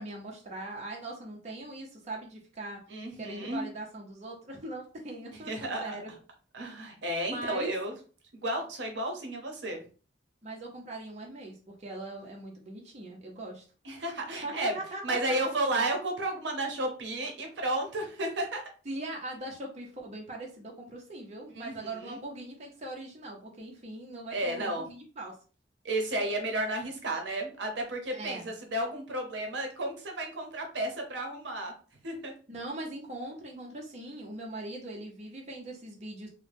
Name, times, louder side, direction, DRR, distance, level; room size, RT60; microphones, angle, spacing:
voice 1, 0.0-2.8 3.2-6.1 7.3-7.7 10.4-13.6 14.4-15.3 18.8-25.3 28.1-28.5 32.5-36.3, right 2 dB, 40° right, -1 dB, 0.6 m, -40 dB
voice 2, 2.9-3.6 5.5-6.0 6.5-7.9 8.3-9.8 13.8-14.8 15.0-18.6 21.6-22.2 24.3-24.8 25.8-31.7 32.0-32.3, right 1 dB, 75° right, 3 dB, 0.7 m, -32 dB
2.7 x 2.0 x 3.3 m, 0.38 s
head